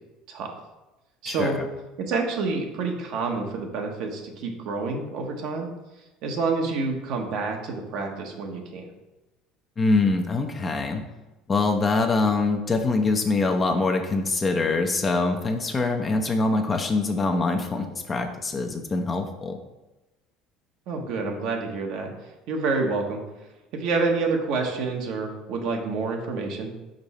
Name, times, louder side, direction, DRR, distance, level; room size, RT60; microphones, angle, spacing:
voice 1, 1.2-1.6 2.0-5.7 6.2-8.9 20.9-23.2 23.7-26.7, right 4 dB, 65° right, 2 dB, 1.1 m, -28 dB
voice 2, 9.8-11.0 11.5-19.6, left 3 dB, 25° left, 4 dB, 0.7 m, -24 dB
5.2 x 4.6 x 4.2 m, 1.1 s
supercardioid pair, 105°, 0 cm